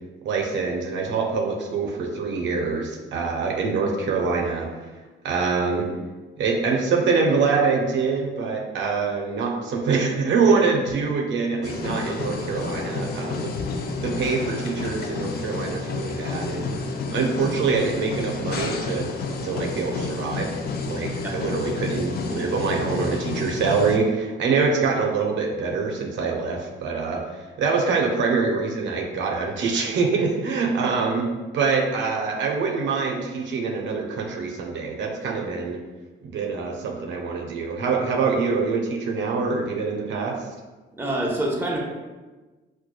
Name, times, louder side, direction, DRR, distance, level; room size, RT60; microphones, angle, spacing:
voice 1, 0.2-4.7 5.2-5.9 6.4-16.7 17.1-19.1 19.4-20.5 20.9-31.3 31.5-35.8 36.2-40.4, right 4 dB, 70° right, 1 dB, 0.5 m, -25 dB
sound 1, 11.6-24.0, left 3 dB, 50° left, 0.4 m, -30 dB
voice 2, 41.0-41.8, right 1 dB, 10° right, -2 dB, 0.7 m, -26 dB
4.5 x 2.2 x 2.2 m, 1.2 s
cardioid pair, 90°, 20 cm